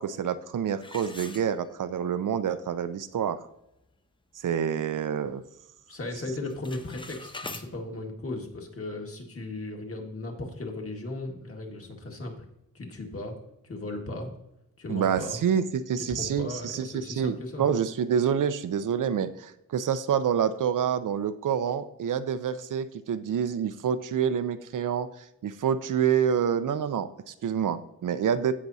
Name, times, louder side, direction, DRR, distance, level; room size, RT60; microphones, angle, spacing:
voice 1, 0.0-3.4 4.4-5.4 14.9-25.1 25.4-28.5, right 8 dB, 70° right, 12 dB, 0.5 m, -27 dB
sound 1, 0.8-2.1 2.5-2.6 3.2-3.3 3.7-4.0 4.4-5.5 5.8-6.1 6.4-7.7, left 2 dB, 15° left, 0.6 m, -43 dB
voice 2, 5.9-12.4 12.7-13.3 13.6-14.3 14.8-15.4 16.1-17.7, left 2 dB, 45° left, 1 dB, 1.7 m, -36 dB
15.5 x 5.9 x 2.7 m, 0.85 s
wide cardioid pair, 125°, 33 cm